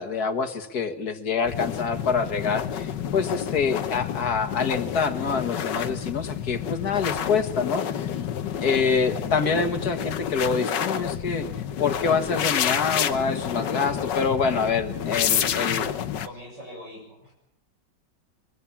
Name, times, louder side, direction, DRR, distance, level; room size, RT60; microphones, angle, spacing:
voice 1, 0.0-8.1 8.6-11.5 11.8-15.9, left 5 dB, 60° left, 8 dB, 2.1 m, -26 dB
sound 1, 1.5-16.3, left 9 dB, 75° left, 1.7 m, -29 dB
voice 2, 15.5-15.9 16.2-17.3, equal, 75° right, -1 dB, 7.8 m, -42 dB
23.0 x 22.0 x 7.3 m, 0.78 s
omnidirectional pair, 1.9 m